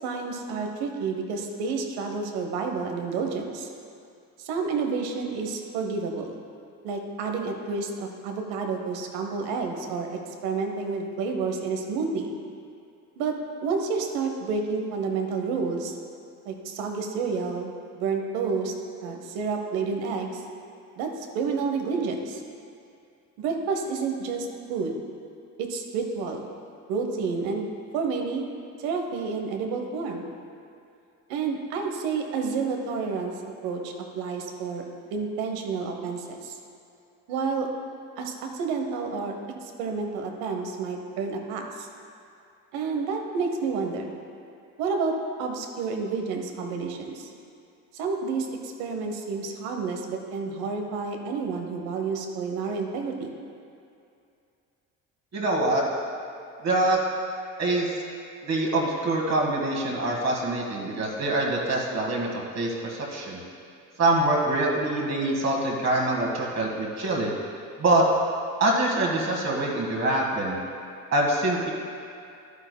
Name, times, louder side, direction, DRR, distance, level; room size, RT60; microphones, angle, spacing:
voice 1, 0.0-3.7 4.4-6.4 6.8-12.3 13.2-15.9 16.5-17.7 17.9-18.7 19.0-20.4 21.0-22.4 23.4-25.0 25.6-26.4 26.9-28.5 28.8-30.3 31.3-33.3 33.6-34.8 35.1-36.6 37.3-37.7 38.2-39.3 39.8-41.9 42.7-44.1 44.8-47.3 47.9-53.3, right 4 dB, 80° right, 3 dB, 1.0 m, -30 dB
voice 2, 55.3-55.8 56.6-57.0 57.6-58.0 58.4-63.4 64.0-67.3 67.8-68.0 68.6-70.6 71.1-71.7, right 2 dB, 45° right, -3 dB, 1.7 m, -25 dB
11.0 x 8.7 x 2.2 m, 2.5 s
supercardioid pair, 70°, 38 cm